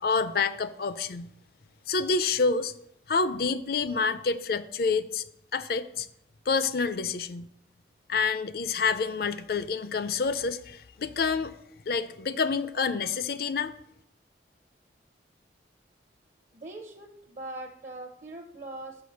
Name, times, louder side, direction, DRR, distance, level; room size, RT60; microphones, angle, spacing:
voice 1, 0.0-1.3 1.9-2.7 3.1-5.3 5.5-6.1 6.5-7.5 8.1-11.5 11.9-13.7, left 4 dB, 55° left, 13 dB, 0.4 m, -28 dB
voice 2, 16.5-19.0, right 2 dB, 40° right, 4 dB, 0.7 m, -41 dB
6.9 x 5.3 x 6.3 m, 0.75 s
head